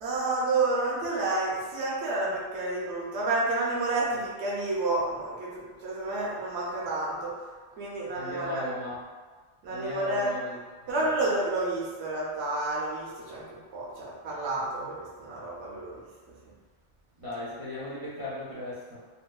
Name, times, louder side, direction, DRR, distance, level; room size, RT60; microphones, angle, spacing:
voice 1, 0.0-7.3 7.8-8.6 9.6-10.3 10.9-16.1 16.5-16.6, right 2 dB, 65° right, -6 dB, 0.8 m, -30 dB
voice 2, 8.1-9.0 9.7-11.1 17.2-19.0, left 2 dB, 40° right, -11 dB, 0.4 m, -38 dB
2.7 x 2.2 x 2.2 m, 1.4 s
omnidirectional pair, 1.3 m